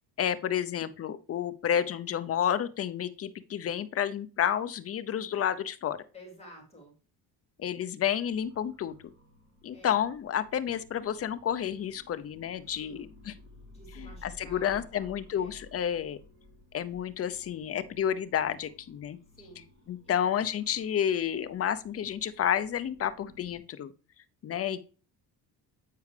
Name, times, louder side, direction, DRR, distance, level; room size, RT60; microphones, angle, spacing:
voice 1, 0.2-6.0 7.6-8.9 9.6-13.3 14.0-16.2 16.7-19.2 19.9-23.9 24.4-24.8, left 9 dB, 35° left, 12 dB, 0.6 m, -30 dB
voice 2, 6.1-6.9 9.7-10.0 12.8-13.1 13.7-15.6 19.3-19.6 20.0-20.1, right 1 dB, 15° left, -1 dB, 3.1 m, -52 dB
sound 1, 8.3-23.6, left 1 dB, 30° right, 4.1 m, -55 dB
8.4 x 4.7 x 3.3 m, 0.36 s
cardioid pair, 120°, 40 cm